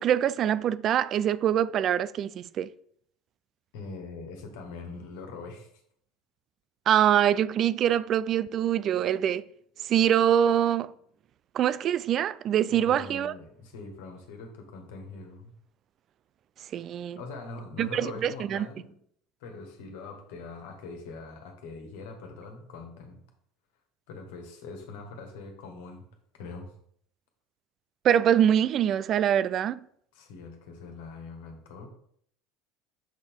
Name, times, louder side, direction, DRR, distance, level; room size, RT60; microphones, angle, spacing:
voice 1, 0.0-2.7 6.9-9.4 9.8-10.9 11.5-13.3 16.7-17.2 17.8-18.7 28.0-29.8, right 10 dB, 45° right, 0.3 m, -24 dB
voice 2, 3.7-5.7 12.7-15.5 17.2-18.9 19.4-23.2 24.1-26.1 26.3-26.7 30.1-31.9, left 3 dB, 70° left, 1.6 m, -42 dB
7.2 x 4.3 x 3.6 m
hypercardioid pair, 75°, 0 cm